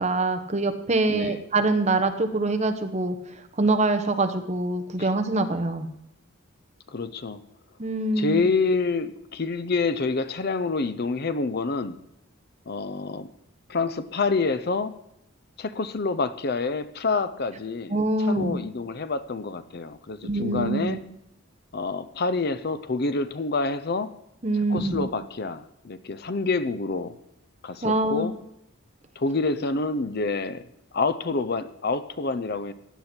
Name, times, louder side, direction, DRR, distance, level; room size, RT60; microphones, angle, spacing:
voice 1, 0.0-3.2 3.6-5.9 7.8-8.4 17.9-18.6 20.2-21.0 24.4-25.1 27.8-28.3, right 2 dB, 30° right, 7 dB, 1.0 m, -24 dB
voice 2, 1.1-1.4 5.0-5.1 6.9-7.4 8.2-12.0 12.7-13.3 13.7-15.0 15.6-17.9 18.2-21.0 21.7-24.2 24.7-27.1 27.6-28.4 29.2-30.6 30.9-32.7, left 3 dB, 45° left, 13 dB, 0.6 m, -27 dB
16.0 x 10.0 x 4.4 m, 0.80 s
head